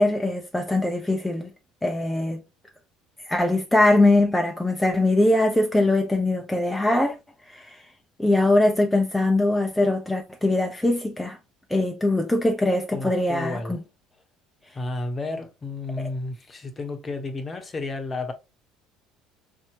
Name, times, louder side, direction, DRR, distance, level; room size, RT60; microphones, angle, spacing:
voice 1, 0.0-1.5 1.8-2.4 3.2-7.2 7.5-7.8 8.2-11.4 11.7-13.8, left 2 dB, 10° left, 0.6 m, -22 dB
voice 2, 12.9-13.8 14.7-18.3, left 3 dB, 30° left, 1.0 m, -32 dB
4.3 x 2.9 x 2.8 m
figure-of-eight pair, 60°, 0 cm